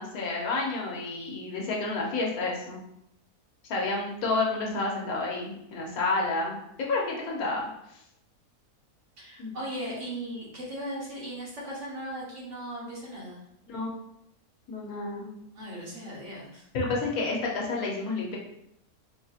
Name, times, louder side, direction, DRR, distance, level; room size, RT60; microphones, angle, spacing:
voice 1, 0.0-2.8 3.7-6.6 6.9-8.0 9.4-9.5 13.7-14.0 14.7-15.3 16.7-18.4, left 3 dB, 70° left, -2 dB, 1.2 m, -30 dB
voice 2, 9.2-13.4 15.5-16.7, right 1 dB, 55° right, -5 dB, 1.3 m, -38 dB
4.5 x 2.6 x 2.4 m, 0.78 s
omnidirectional pair, 1.6 m